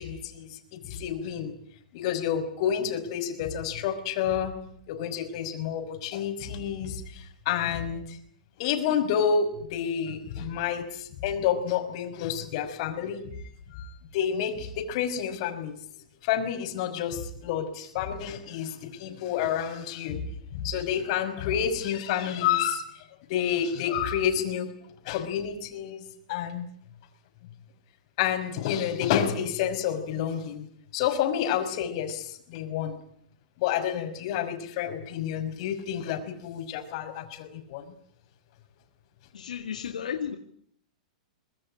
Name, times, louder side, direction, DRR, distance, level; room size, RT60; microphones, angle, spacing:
voice 1, 0.0-1.5 1.9-4.5 4.9-8.2 8.6-13.3 13.7-15.7 16.2-20.2 20.5-22.9 23.3-24.7 25.1-26.0 26.3-26.7 28.2-30.7 30.9-33.0 33.6-37.8, left 8 dB, 55° left, 8 dB, 5.6 m, -29 dB
voice 2, 39.3-40.4, left 8 dB, 90° left, 5 dB, 2.2 m, -33 dB
24.0 x 21.0 x 10.0 m, 0.66 s
hypercardioid pair, 130°, 4 cm